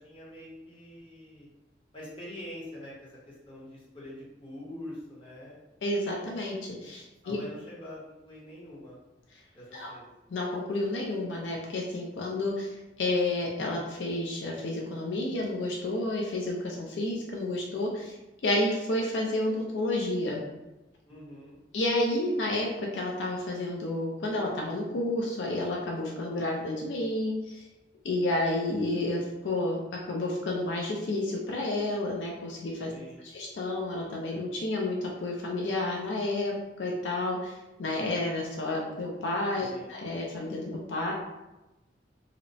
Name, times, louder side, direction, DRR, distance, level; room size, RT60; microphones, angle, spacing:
voice 1, 0.0-1.5 1.9-5.6 7.2-9.0 9.5-10.1 21.0-21.6 32.9-33.3 39.6-39.9, left 1 dB, 30° left, -7 dB, 0.9 m, -45 dB
voice 2, 5.8-7.4 9.7-9.9 10.3-18.2 18.4-20.4 21.7-22.7 22.9-27.7 28.0-29.8 30.1-32.9 33.2-36.5 36.8-41.1, left 2 dB, 80° left, -1 dB, 0.4 m, -30 dB
2.8 x 2.0 x 2.6 m, 1.0 s
head